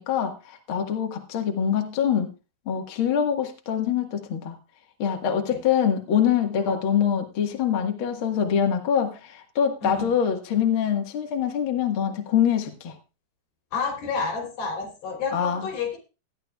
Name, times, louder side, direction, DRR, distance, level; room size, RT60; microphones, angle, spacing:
voice 1, 0.0-2.3 2.7-4.6 5.0-13.0 15.3-15.7, left 8 dB, 50° left, 3 dB, 1.7 m, -24 dB
voice 2, 9.8-10.1 13.7-16.0, left 5 dB, 85° left, 2 dB, 4.9 m, -30 dB
18.0 x 11.5 x 2.3 m, 0.30 s
omnidirectional pair, 4.2 m